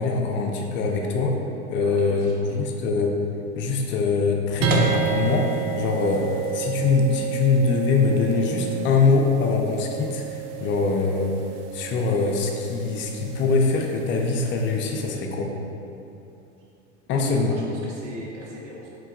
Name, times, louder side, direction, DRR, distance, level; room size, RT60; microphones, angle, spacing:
voice 1, 0.0-1.4 1.7-2.3 2.6-3.1 3.6-6.3 6.5-11.3 11.7-15.5 17.1-17.5, left 4 dB, 35° left, 2 dB, 0.4 m, -23 dB
voice 2, 1.8-2.6 17.1-18.9, right 2 dB, 85° right, -4 dB, 1.0 m, -36 dB
sound 1, 4.6-15.1, right 6 dB, 55° right, 0.6 m, -30 dB
4.5 x 3.8 x 2.5 m, 2.8 s
hypercardioid pair, 90°, 35 cm